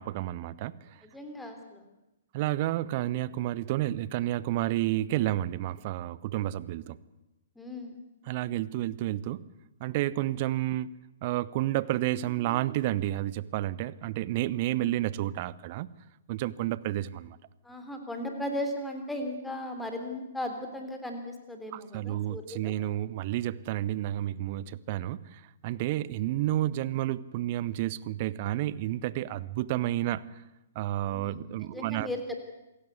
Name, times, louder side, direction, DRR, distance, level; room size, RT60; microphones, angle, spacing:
voice 1, 0.0-1.0 2.3-7.0 8.3-9.5 9.8-10.9 11.2-15.9 16.3-17.4 21.7-30.4 30.7-32.1, right 14 dB, 35° right, 19 dB, 0.8 m, -30 dB
voice 2, 1.0-1.8 7.6-8.0 17.6-22.7 31.1-32.5, left 1 dB, 5° left, 4 dB, 3.5 m, -37 dB
27.0 x 17.0 x 8.3 m, 0.95 s
figure-of-eight pair, 120°, 0 cm